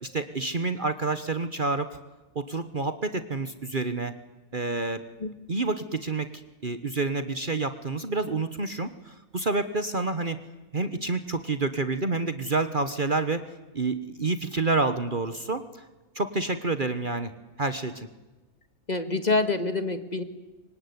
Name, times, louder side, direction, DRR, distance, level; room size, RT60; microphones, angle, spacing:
voice 1, 0.0-1.9 2.3-4.1 4.5-5.0 5.5-6.3 6.6-10.4 10.7-13.4 13.7-15.6 16.1-17.3 17.6-18.1, right 3 dB, 35° right, 11 dB, 1.3 m, -28 dB
voice 2, 18.9-20.2, left 3 dB, 30° left, 10 dB, 1.8 m, -26 dB
25.0 x 24.5 x 9.6 m, 1.1 s
omnidirectional pair, 1.5 m